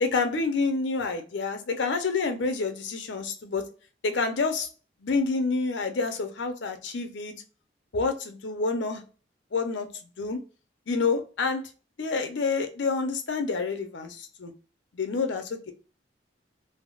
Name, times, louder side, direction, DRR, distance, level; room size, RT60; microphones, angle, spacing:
voice 1, 0.0-3.6 4.0-4.7 5.0-7.3 7.9-9.0 9.5-9.9 10.2-10.4 10.9-11.6 12.0-14.5 14.9-15.7, left 4 dB, 80° left, 7 dB, 0.6 m, -28 dB
3.4 x 2.0 x 2.3 m, 0.35 s
head